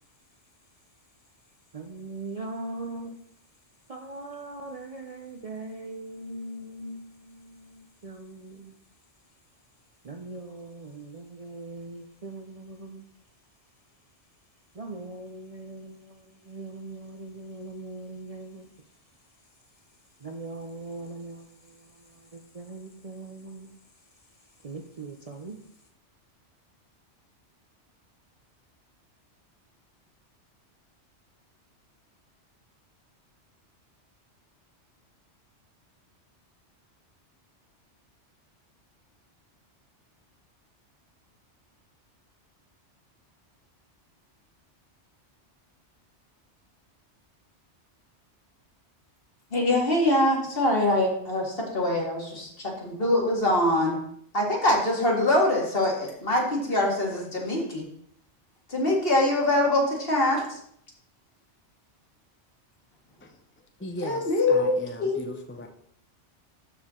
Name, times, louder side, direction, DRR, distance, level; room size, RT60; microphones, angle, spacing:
voice 1, 1.7-3.2 3.9-8.8 10.0-13.1 14.7-18.7 20.2-23.7 24.2-24.3 24.6-25.6, right 2 dB, 40° right, 0.6 m, -40 dB
voice 2, 49.5-54.0 54.3-57.9 58.7-60.6 64.0-64.7 65.0-65.3, left 1 dB, 55° left, 2.2 m, -24 dB
voice 3, 63.8-65.7, left 1 dB, 15° left, 0.5 m, -38 dB
12.5 x 4.6 x 3.7 m
omnidirectional pair, 1.2 m